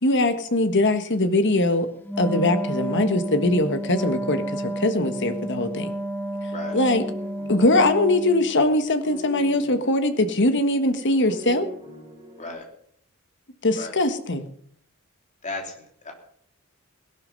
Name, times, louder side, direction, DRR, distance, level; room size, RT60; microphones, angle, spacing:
voice 1, 0.0-1.9 2.2-5.9 6.7-7.0 7.5-11.7 13.6-14.4, left 2 dB, 55° left, 9 dB, 1.6 m, -21 dB
Wind instrument woodwind instrument, 2.0-8.5, right 1 dB, 10° left, 1.3 m, -31 dB
sound 1, 6.9-12.5, equal, 20° right, 8.0 m, -43 dB
voice 2, 15.4-16.1, left 2 dB, 35° left, 2 dB, 3.4 m, -35 dB
17.5 x 12.0 x 5.4 m, 0.65 s
head